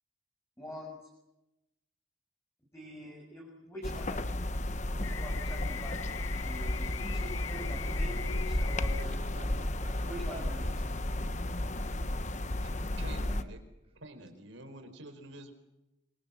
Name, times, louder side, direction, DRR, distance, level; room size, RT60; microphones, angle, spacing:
voice 1, 0.6-1.1 2.7-4.3 5.0-9.2 10.1-10.6, equal, 15° left, -2 dB, 6.5 m, -45 dB
sound 1, 3.8-13.4, left 1 dB, 35° left, 1.2 m, -33 dB
sound 2, 5.0-9.0, left 9 dB, 80° left, 1.1 m, -43 dB
voice 2, 9.0-11.3 13.8-13.9, right 1 dB, 30° right, 1 dB, 7.2 m, -50 dB
voice 3, 12.4-13.6 14.0-15.5, right 1 dB, 70° right, 7 dB, 4.9 m, -48 dB
27.0 x 25.5 x 7.7 m, 0.94 s
head